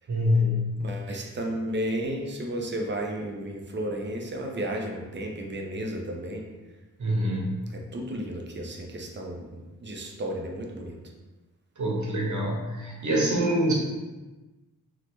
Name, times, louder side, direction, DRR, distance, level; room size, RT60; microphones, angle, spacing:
voice 1, 0.1-0.8 7.0-7.6 11.8-13.7, equal, 55° right, -3 dB, 0.8 m, -25 dB
voice 2, 0.8-6.5 7.7-10.9, right 1 dB, 35° right, 1 dB, 0.5 m, -33 dB
3.2 x 2.0 x 2.9 m, 1.2 s
wide cardioid pair, 85°, 35 cm